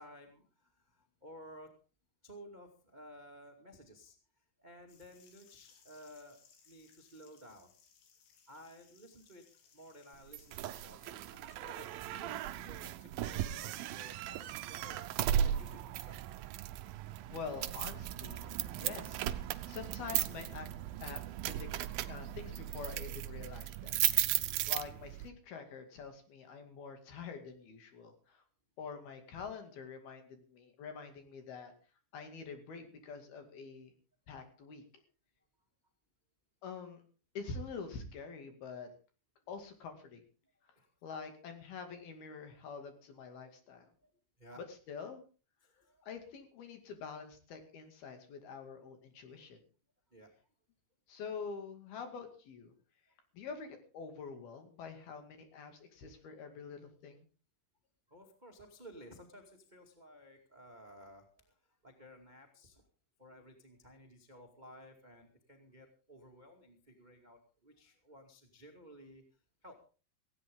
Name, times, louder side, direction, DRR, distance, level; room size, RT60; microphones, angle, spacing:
voice 1, 0.0-1.7 2.2-7.7 8.5-9.4 9.7-15.1 15.4-16.2 40.7-40.9 44.0-44.1 44.4-44.6 45.6-46.0 50.1-50.3 53.1-53.2 58.1-62.8 63.2-69.2 69.6-69.8, equal, 20° right, 3 dB, 1.1 m, -55 dB
sound 1, 4.9-10.7, left 7 dB, 80° left, 4.9 m, -65 dB
sound 2, 10.3-25.3, right 12 dB, 85° right, 2.1 m, -36 dB
voice 2, 17.3-18.5 18.8-20.7 21.0-21.7 22.1-24.0 24.7-28.4 28.8-31.7 32.1-33.9 34.3-34.8 36.6-37.0 37.4-38.9 39.5-40.2 41.0-43.9 44.6-45.2 46.0-49.6 51.1-52.7 53.3-57.2, left 5 dB, 60° left, 6 dB, 4.0 m, -46 dB
18.0 x 16.5 x 3.7 m, 0.36 s
omnidirectional pair, 5.2 m